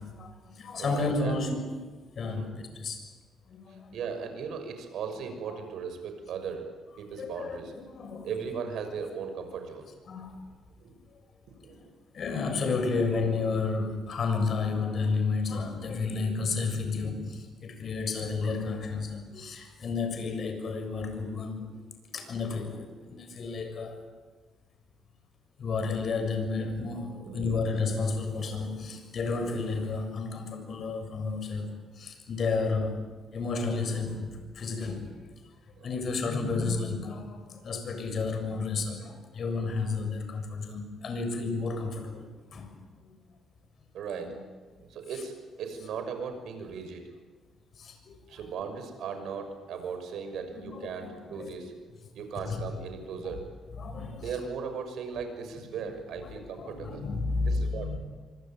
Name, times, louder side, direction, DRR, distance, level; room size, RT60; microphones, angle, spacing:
voice 1, 0.0-1.8 2.2-3.0 3.5-3.9 5.5-5.6 7.2-8.3 10.1-10.4 12.1-21.6 22.1-24.0 25.6-33.1 33.3-35.2 35.8-42.7 43.0-43.1 44.2-44.4 47.8-48.2 50.6-51.5 52.5-52.6 53.8-54.3 56.2-58.0, left 4 dB, 55° left, 7 dB, 7.0 m, -32 dB
voice 2, 0.8-1.4 2.3-2.5 3.9-6.7 7.0-7.7 8.2-9.9 10.8-10.9 11.6-11.9 22.1-22.3 27.1-27.5 35.8-35.9 43.9-44.3 44.8-45.3 45.6-47.0 48.3-51.7 52.1-53.5 54.2-57.0 57.5-58.0, right 6 dB, 75° right, 7 dB, 6.2 m, -37 dB
25.5 x 25.0 x 9.2 m, 1.4 s
cardioid pair, 90°, 0 cm